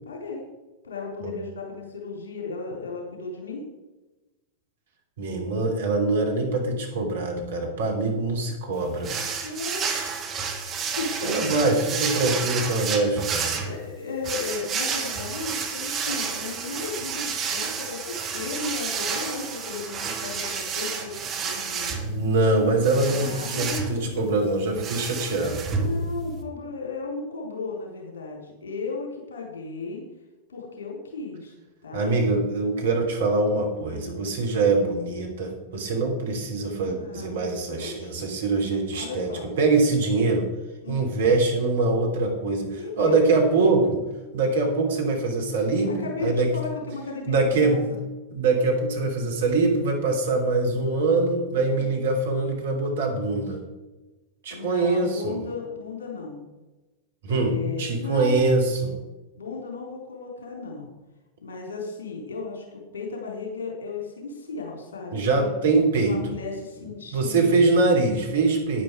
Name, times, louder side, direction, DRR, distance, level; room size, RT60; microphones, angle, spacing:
voice 1, 0.0-0.4 0.8-3.6 9.4-10.2 11.0-11.3 13.6-22.0 23.0-24.5 25.7-30.0 30.5-31.5 31.8-32.1 33.9-34.2 36.9-38.2 38.9-39.5 40.8-41.1 42.8-43.2 46.0-48.0 51.7-52.0 54.5-56.4 57.3-58.4 59.4-60.9 61.4-65.5 66.1-67.5, left 4 dB, 65° left, 0 dB, 4.0 m, -35 dB
voice 2, 5.2-9.1 11.2-13.5 22.0-25.6 31.9-39.3 39.6-40.5 40.9-44.0 44.3-46.5 47.3-47.8 48.3-53.6 54.4-55.4 57.2-58.9 65.1-66.2 67.1-68.8, right 3 dB, 60° right, 2 dB, 3.1 m, -23 dB
sound 1, 9.0-26.4, right 5 dB, 30° right, 2.0 m, -30 dB
10.5 x 10.5 x 4.9 m, 1.1 s
figure-of-eight pair, 90°, 0 cm